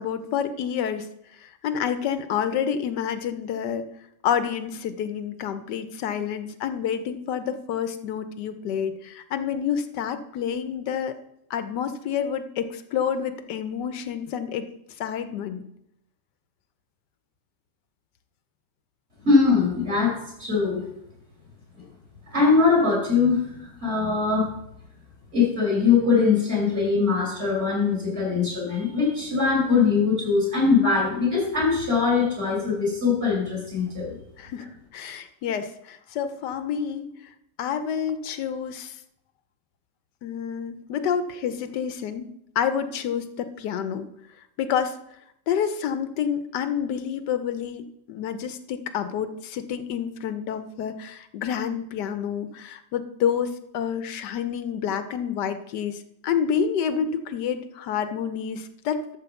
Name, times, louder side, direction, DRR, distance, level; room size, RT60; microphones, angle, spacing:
voice 1, 0.0-3.9 4.2-11.2 11.5-14.7 15.0-15.6 34.4-34.7 34.9-37.1 37.6-39.0 40.2-42.3 42.5-44.1 44.6-45.0 45.5-59.2, left 8 dB, 80° left, 10 dB, 1.3 m, -28 dB
voice 2, 19.2-20.8 22.3-23.4 23.8-24.5 25.3-34.2, left 4 dB, 35° right, -4 dB, 4.8 m, -21 dB
12.5 x 4.5 x 6.9 m, 0.76 s
omnidirectional pair, 1.8 m